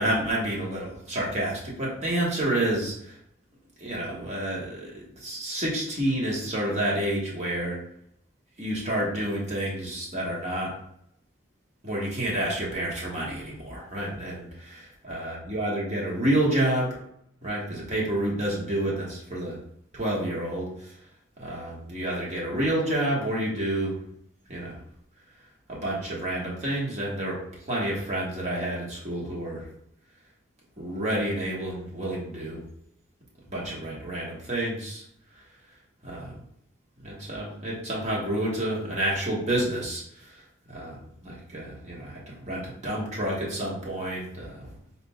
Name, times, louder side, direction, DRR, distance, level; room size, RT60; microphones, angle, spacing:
voice 1, 0.0-3.2 3.8-7.8 8.6-10.7 11.8-17.0 17.4-19.6 19.9-21.0 21.4-24.0 24.5-24.8 25.7-29.7 30.8-32.6 33.4-35.0 35.3-35.4 36.0-36.4 37.0-44.8, right 1 dB, 35° right, -4 dB, 1.2 m, -29 dB
4.1 x 3.8 x 2.3 m, 0.72 s
head